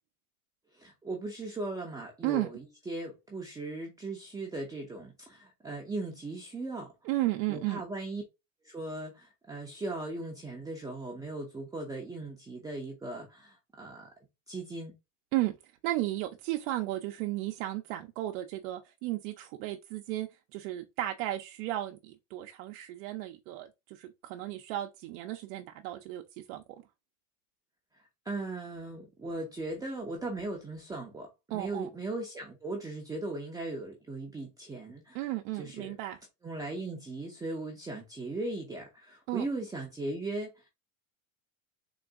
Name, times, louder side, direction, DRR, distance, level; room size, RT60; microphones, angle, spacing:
voice 1, 0.7-6.9 7.5-8.2 8.6-14.1 14.5-14.9 28.3-35.3 35.6-35.9 36.4-40.7, right 2 dB, 10° right, 0.5 m, -38 dB
voice 2, 7.0-7.8 15.3-15.6 15.8-26.6 31.5-31.9 35.1-36.2 39.3-39.5, right 16 dB, 70° right, 0.6 m, -34 dB
3.9 x 2.5 x 3.4 m
supercardioid pair, 150°, 42 cm